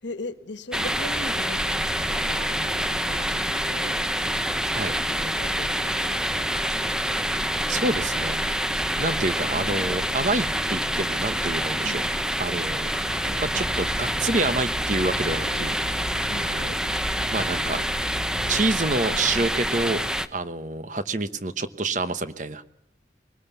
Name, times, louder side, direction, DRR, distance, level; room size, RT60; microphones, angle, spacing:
voice 1, 0.0-4.0 5.1-6.9 8.4-8.5 9.5-10.2 11.8-12.0 16.3-16.5, left 2 dB, 90° left, 1.5 m, -39 dB
sound 1, 0.7-20.3, equal, 5° right, 0.8 m, -27 dB
voice 2, 7.7-8.6 9.0-11.9 12.4-12.9 13.4-15.8 16.4-16.7 17.3-17.8 18.5-20.0 20.3-22.6, right 2 dB, 45° right, 1.1 m, -27 dB
sound 2, 13.0-18.6, equal, 55° left, 1.4 m, -37 dB
22.0 x 19.5 x 7.1 m
head